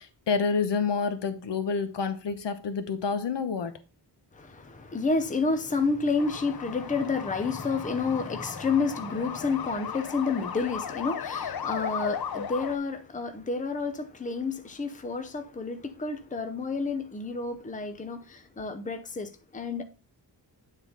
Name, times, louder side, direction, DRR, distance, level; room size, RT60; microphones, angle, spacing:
voice 1, 0.0-3.7, left 5 dB, 80° left, 1.0 m, -28 dB
voice 2, 4.3-19.8, left 4 dB, 20° left, 0.6 m, -30 dB
sound 1, 6.2-12.8, left 7 dB, 60° left, 0.7 m, -36 dB
9.4 x 4.0 x 3.9 m
wide cardioid pair, 165°, 42 cm